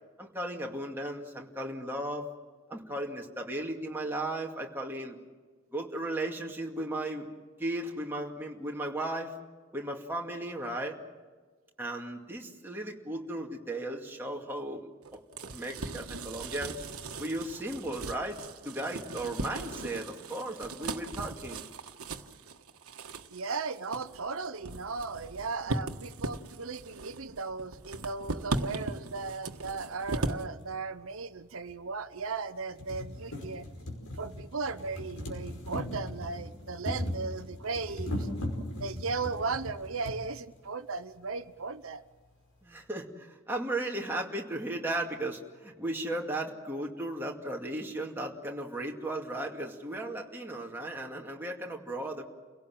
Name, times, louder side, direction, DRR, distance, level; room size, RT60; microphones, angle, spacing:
voice 1, 0.2-2.3 2.7-5.2 5.7-7.3 7.6-9.3 9.7-11.0 11.8-14.9 15.4-16.8 17.2-18.4 18.6-21.6 42.6-52.2, right 1 dB, 10° right, -1 dB, 2.3 m, -36 dB
sound 1, 15.0-30.4, right 2 dB, 90° right, 1.5 m, -38 dB
voice 2, 23.3-33.6 34.2-38.4 38.7-42.0, right 4 dB, 75° right, 10 dB, 0.9 m, -36 dB
sound 2, 30.6-30.7 31.7-31.8 32.2-32.3 32.6-40.2 41.1-41.2 41.4-41.5, left 1 dB, 80° left, 5.3 m, -38 dB
30.0 x 17.5 x 7.7 m, 1.4 s
head